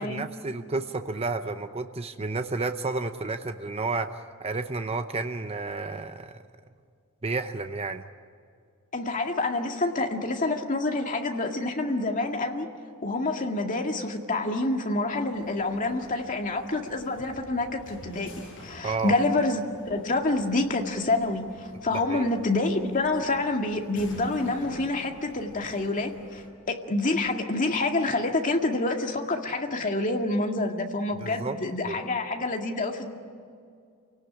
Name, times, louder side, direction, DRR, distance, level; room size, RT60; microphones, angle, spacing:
voice 1, 0.0-6.4 7.2-8.0 18.8-19.1 21.9-22.3 31.2-31.6 31.9-32.0, right 3 dB, 30° right, 8 dB, 0.8 m, -31 dB
voice 2, 8.9-12.7 13.0-18.3 18.6-33.1, left 2 dB, 35° left, 3 dB, 2.1 m, -27 dB
sound 1, 15.2-26.5, left 1 dB, 60° left, 7.5 m, -49 dB
28.5 x 18.0 x 10.0 m, 2.2 s
head